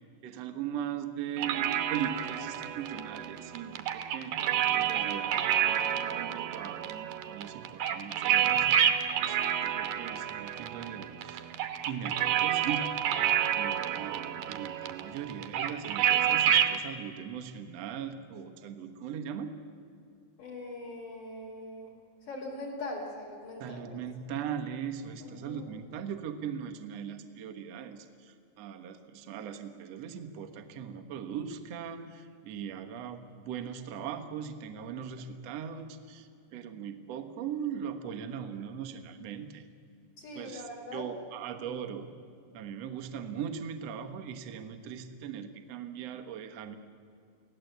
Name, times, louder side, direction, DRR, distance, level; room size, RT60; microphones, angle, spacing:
voice 1, 0.2-8.8 9.2-11.5 11.9-12.9 13.5-19.6 23.6-39.6 40.3-40.6 40.9-42.1 42.5-46.7, right 8 dB, 90° right, 6 dB, 1.4 m, -39 dB
sound 1, 1.4-16.8, right 10 dB, 70° right, 2.2 m, -29 dB
voice 2, 20.4-21.9 22.2-24.0 25.2-25.6 40.2-41.1 41.6-41.8, left 2 dB, 45° left, -4 dB, 4.5 m, -41 dB
24.5 x 17.5 x 8.0 m, 2.4 s
omnidirectional pair, 5.1 m